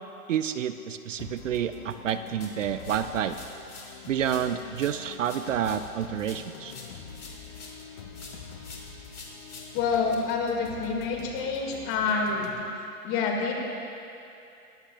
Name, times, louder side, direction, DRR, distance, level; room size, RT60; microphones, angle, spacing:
voice 1, 0.3-3.4 4.1-6.7, right 9 dB, 55° right, 11 dB, 0.5 m, -29 dB
sound 1, 1.2-12.6, left 6 dB, 45° left, 1.4 m, -45 dB
sound 2, 2.4-4.0 4.2-7.9 8.1-10.1, left 3 dB, 75° left, 2.7 m, -46 dB
voice 2, 9.7-12.5 13.0-13.5, left 5 dB, 30° left, 1 dB, 1.9 m, -27 dB
20.5 x 14.5 x 2.3 m, 2.7 s
figure-of-eight pair, 120°, 45 cm